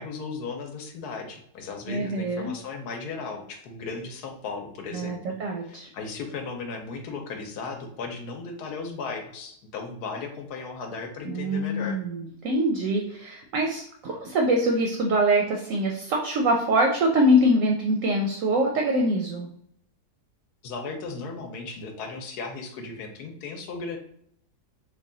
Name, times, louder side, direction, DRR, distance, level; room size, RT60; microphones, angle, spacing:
voice 1, 0.0-5.3 5.6-12.0 20.6-24.0, left 4 dB, 75° left, 3 dB, 1.2 m, -36 dB
voice 2, 1.9-2.5 4.9-5.9 11.2-19.5, right 1 dB, 65° right, 1 dB, 0.8 m, -24 dB
3.3 x 2.3 x 3.7 m, 0.70 s
omnidirectional pair, 1.7 m